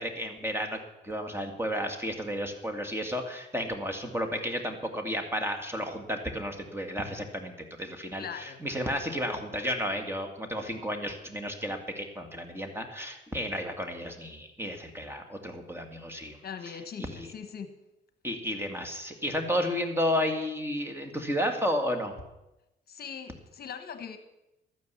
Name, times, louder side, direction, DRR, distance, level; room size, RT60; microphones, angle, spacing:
voice 1, 0.0-7.5 7.8-16.4 17.0-17.3 18.2-22.1, equal, 10° right, 4 dB, 2.1 m, -32 dB
voice 2, 8.1-8.6 16.4-17.7 22.9-24.2, left 7 dB, 50° left, 8 dB, 1.1 m, -41 dB
13.0 x 9.5 x 7.0 m, 0.93 s
cardioid pair, 90°, 20 cm